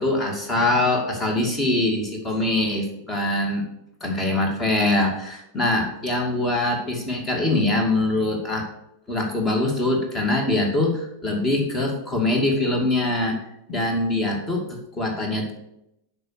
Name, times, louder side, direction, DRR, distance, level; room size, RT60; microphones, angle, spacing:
voice 1, 0.0-3.6 4.0-8.7 9.1-13.4 13.7-15.5, left 2 dB, 20° left, 2 dB, 2.4 m, -23 dB
7.8 x 5.5 x 6.6 m, 0.82 s
figure-of-eight pair, 90°, 0 cm